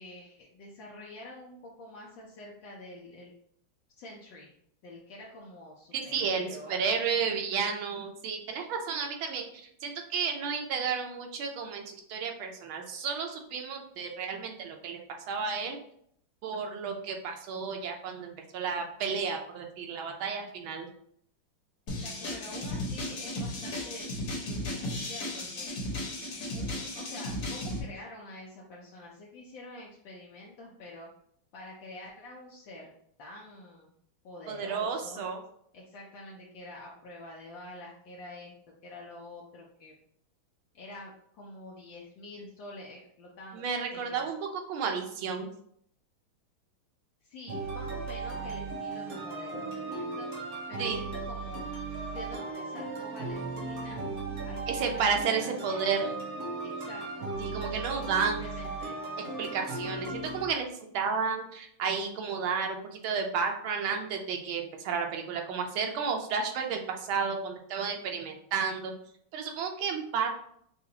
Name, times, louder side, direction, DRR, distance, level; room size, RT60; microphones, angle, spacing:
voice 1, 0.0-3.3 4.0-4.5 4.8-7.3 22.0-24.1 24.4-25.7 26.5-31.1 31.5-32.9 33.2-33.9 34.2-35.3 35.7-39.9 40.7-44.3 47.2-50.3 50.7-51.6 52.1-54.1 54.4-55.9 56.6-59.0, left 1 dB, 70° left, -3 dB, 1.4 m, -47 dB
voice 2, 5.9-9.5 9.8-15.0 15.3-15.8 16.4-20.9 34.5-35.4 43.5-45.5 50.8-51.0 54.7-56.1 57.4-58.4 59.2-60.7 60.9-68.9 69.3-70.3, right 5 dB, 80° right, 3 dB, 1.5 m, -32 dB
sound 1, 21.9-27.8, left 1 dB, 55° left, 1.5 m, -35 dB
sound 2, 47.5-60.4, right 3 dB, 55° right, 1.1 m, -37 dB
5.9 x 2.4 x 2.8 m, 0.68 s
omnidirectional pair, 2.2 m